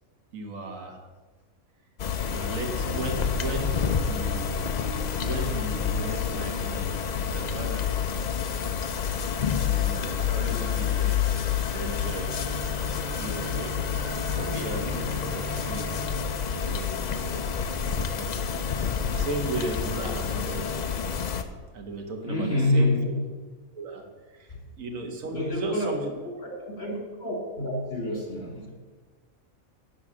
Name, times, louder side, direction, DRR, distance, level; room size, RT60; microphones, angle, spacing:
voice 1, 0.3-1.0 2.3-4.6 5.2-8.0 9.6-11.4 11.7-12.3 13.2-13.8 14.3-16.0 16.5-18.4 19.1-20.9 21.7-23.1 23.7-24.5 24.8-26.1, right 2 dB, 70° right, 4 dB, 1.6 m, -36 dB
sound 1, 2.0-21.4, left 7 dB, 65° left, 0.4 m, -28 dB
sound 2, 6.2-15.2, left 1 dB, 45° right, 2.2 m, -49 dB
Bowed string instrument, 12.0-17.9, right 2 dB, 15° right, 1.1 m, -41 dB
voice 2, 22.3-23.1 24.5-24.6 25.3-25.9 26.4-28.7, left 1 dB, 45° left, -1 dB, 2.5 m, -28 dB
10.5 x 4.0 x 7.4 m, 1.4 s
omnidirectional pair, 1.5 m